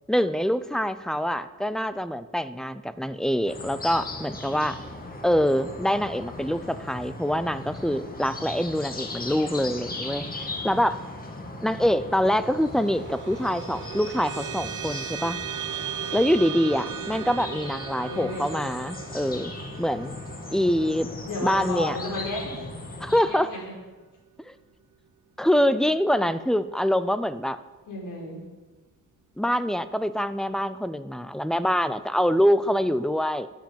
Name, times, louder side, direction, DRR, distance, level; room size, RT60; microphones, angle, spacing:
voice 1, 0.1-4.8 5.2-11.0 11.6-15.4 16.1-19.5 19.8-20.2 20.5-21.1 21.4-22.0 23.0-23.5 24.5-24.6 25.4-27.6 29.4-33.5, equal, ahead, 13 dB, 0.4 m, -25 dB
sound 1, 3.4-23.2, left 2 dB, 25° left, 1.8 m, -38 dB
sound 2, 12.5-23.3, right 10 dB, 60° right, 0.9 m, -38 dB
voice 2, 18.0-18.7 21.2-22.6 23.2-23.6 27.9-28.4, left 2 dB, 60° left, -2 dB, 5.2 m, -33 dB
12.0 x 10.5 x 7.6 m, 1.2 s
wide cardioid pair, 180°, 34 cm